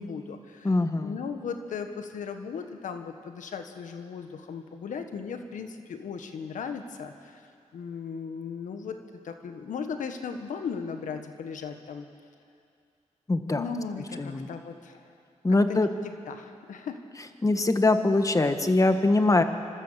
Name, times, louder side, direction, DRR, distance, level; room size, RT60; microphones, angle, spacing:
voice 1, 0.0-0.7 1.0-7.5 7.7-12.1 13.5-15.1 15.7-17.0, left 6 dB, 90° left, 7 dB, 1.4 m, -37 dB
voice 2, 0.6-1.2 13.3-13.6 14.2-14.5 15.4-15.9 17.4-19.4, left 2 dB, 25° left, 8 dB, 1.5 m, -22 dB
26.0 x 13.0 x 8.2 m, 2.4 s
cardioid pair, 70°, 13 cm